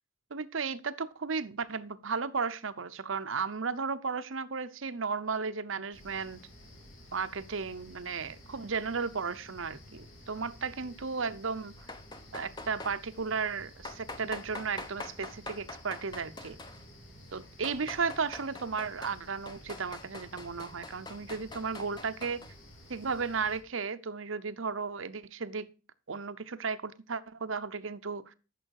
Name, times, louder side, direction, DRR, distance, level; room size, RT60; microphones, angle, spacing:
voice 1, 0.3-6.4 7.1-11.7 12.3-16.6 17.3-22.4 22.9-25.7 26.1-28.3, right 5 dB, 70° right, 0.8 m, -34 dB
sound 1, 5.9-23.6, equal, 65° left, 5.2 m, -53 dB
sound 2, 11.8-13.0 13.8-16.9 17.4-19.2 19.5-22.5, left 2 dB, 20° left, 0.9 m, -44 dB
13.5 x 7.0 x 4.7 m
head